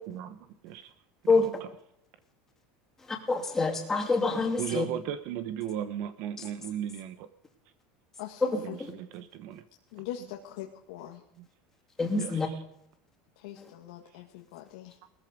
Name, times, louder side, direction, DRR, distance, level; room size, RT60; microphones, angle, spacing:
voice 1, 0.1-0.9 1.3-1.5 4.6-7.3 8.6-9.6 11.4-11.5 12.2-12.4, right 10 dB, 55° right, 1.0 m, -36 dB
voice 2, 3.0-4.9 8.4-8.9 12.0-12.5 13.6-13.7, left 3 dB, 10° left, 2.7 m, -27 dB
voice 3, 9.9-11.2 13.4-14.9, left 12 dB, 80° left, 1.9 m, -42 dB
20.0 x 14.0 x 5.2 m
cardioid pair, 165°, 4 cm